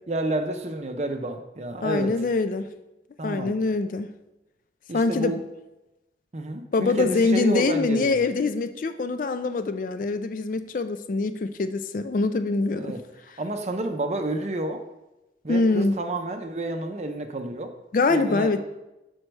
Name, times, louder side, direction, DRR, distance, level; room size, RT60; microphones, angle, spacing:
voice 1, 0.1-2.1 3.2-3.5 4.9-5.4 6.3-8.2 12.7-13.0 13.4-14.8 15.4-17.7 18.1-18.6, right 2 dB, 40° right, 6 dB, 0.6 m, -30 dB
voice 2, 1.8-2.7 3.2-4.1 4.9-5.4 6.7-12.9 15.5-15.9 17.9-18.6, left 3 dB, 50° left, 10 dB, 0.4 m, -24 dB
6.4 x 4.4 x 4.5 m, 0.97 s
head